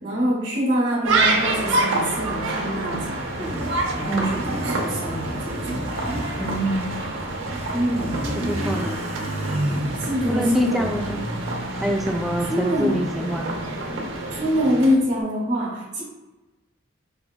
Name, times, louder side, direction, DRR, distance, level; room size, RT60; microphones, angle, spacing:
voice 1, 0.0-3.6 3.9-5.9 7.7-8.2 10.0-10.9 12.4-13.0 14.3-16.0, equal, 60° right, -6 dB, 1.2 m, -25 dB
sound 1, 1.0-14.9, right 2 dB, 90° right, 0.7 m, -28 dB
Motorcycle, 2.5-15.2, right 1 dB, 30° right, 0.7 m, -32 dB
voice 2, 4.1-4.5 6.4-7.0 8.3-9.0 10.3-11.2 11.8-13.6, equal, ahead, 2 dB, 0.4 m, -25 dB
4.7 x 3.4 x 2.2 m, 1.1 s
head